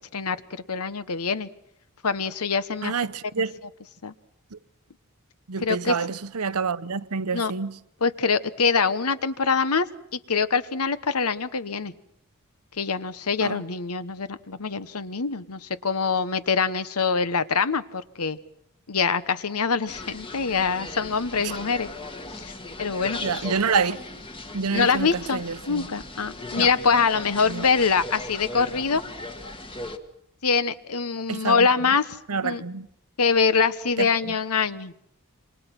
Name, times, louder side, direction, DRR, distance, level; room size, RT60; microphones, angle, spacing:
voice 1, 0.1-1.5 2.0-2.9 4.0-4.1 5.6-6.0 7.3-7.5 8.0-9.9 10.1-11.9 12.8-18.4 18.9-21.9 22.3-22.5 22.8-23.2 24.7-29.0 30.4-32.2 32.4-32.6 33.2-34.9, left 5 dB, 80° left, 1.1 m, -24 dB
voice 2, 2.8-3.6 5.5-7.7 13.4-13.6 23.2-24.0 24.5-25.9 26.5-26.7 27.5-27.6 31.3-31.7 32.3-32.9 34.0-34.1, right 5 dB, 85° right, 0.9 m, -27 dB
sound 1, 19.9-30.0, left 2 dB, 25° left, 1.6 m, -38 dB
28.0 x 25.0 x 6.0 m
head